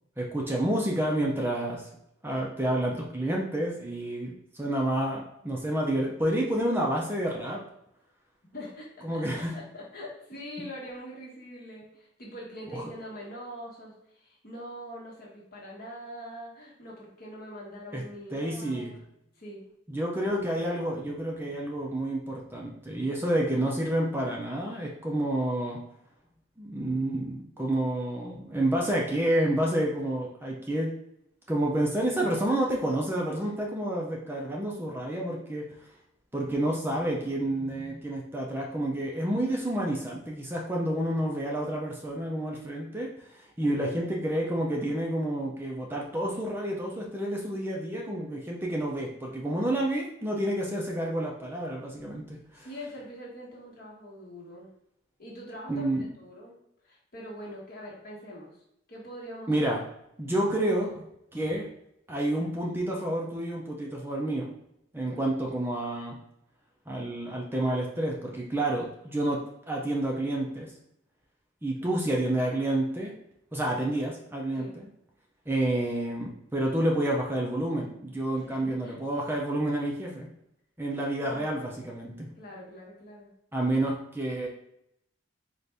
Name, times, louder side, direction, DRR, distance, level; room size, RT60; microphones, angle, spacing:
voice 1, 0.2-1.9 2.2-7.6 9.0-9.6 12.7-12.8 17.9-18.0 18.3-18.9 19.9-25.8 26.6-30.9 31.5-35.6 36.3-52.7 55.7-56.1 59.5-59.8 60.2-61.0 61.3-61.7 62.1-64.5 64.9-66.2 66.9-70.7 71.6-73.1 73.5-74.9 75.5-80.3 80.8-82.3 83.5-84.5, right 1 dB, 10° right, -2 dB, 0.5 m, -29 dB
voice 2, 8.5-19.0 19.3-19.6 43.6-44.2 52.5-54.7 55.2-55.9 56.2-56.5 56.8-58.6 58.9-59.7 65.0-65.2 71.8-71.9 74.5-74.7 78.3-78.9 81.2-81.5 82.4-83.3, equal, 50° left, -3 dB, 1.2 m, -43 dB
4.1 x 2.5 x 3.3 m, 0.78 s
head